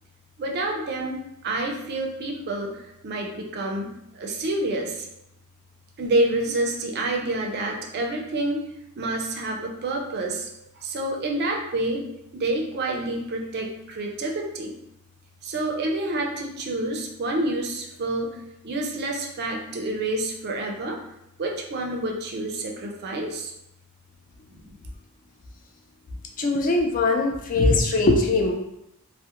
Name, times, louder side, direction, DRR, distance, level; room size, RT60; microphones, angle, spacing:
voice 1, 0.4-5.1 6.0-8.6 9.0-10.5 10.8-12.0 12.3-14.7 15.4-18.4 18.6-21.0 21.4-23.5 24.5-24.7, right 2 dB, 50° right, 1 dB, 0.4 m, -28 dB
voice 2, 26.4-28.5, left 2 dB, 40° left, 2 dB, 0.3 m, -21 dB
2.3 x 2.0 x 2.8 m, 0.82 s
head